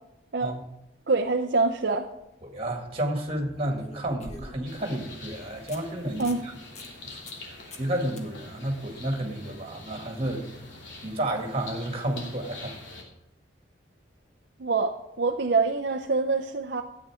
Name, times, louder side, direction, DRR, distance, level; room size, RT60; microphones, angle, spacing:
voice 1, 1.1-2.1 6.2-6.4 14.6-16.8, right 4 dB, 60° right, 5 dB, 0.6 m, -25 dB
sound 1, 2.0-2.1 3.5-4.8 5.3-5.4 5.7-5.8 6.1-6.4 6.8-6.9 7.3-7.4 7.7-7.9 8.2-8.3 11.4-11.5, left 1 dB, 35° left, 1.5 m, -44 dB
voice 2, 2.4-6.5 7.0-10.5 11.0-12.7, right 1 dB, 30° right, 3 dB, 2.0 m, -31 dB
sound 2, 4.7-13.0, left 3 dB, 75° left, 2.9 m, -45 dB
13.0 x 8.9 x 4.9 m, 0.92 s
head